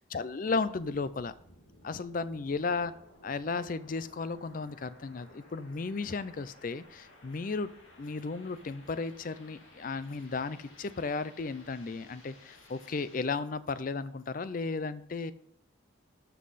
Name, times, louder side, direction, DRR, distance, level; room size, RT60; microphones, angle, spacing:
voice 1, 0.0-1.3 1.8-2.9 3.2-7.7 8.0-15.3, left 4 dB, 40° left, 15 dB, 0.4 m, -34 dB
sound 1, 0.8-13.2, left 1 dB, 80° left, 2.3 m, -57 dB
12.5 x 5.6 x 4.1 m, 0.75 s
head